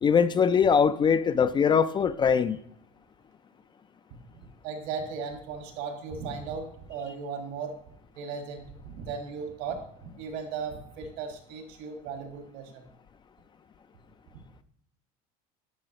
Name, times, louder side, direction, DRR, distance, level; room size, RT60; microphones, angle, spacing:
voice 1, 0.0-2.6, left 6 dB, 25° left, 0.3 m, -22 dB
voice 2, 4.3-7.8 8.1-12.8, right 5 dB, 75° right, 1.6 m, -37 dB
11.0 x 4.6 x 3.0 m
supercardioid pair, 105°, 19 cm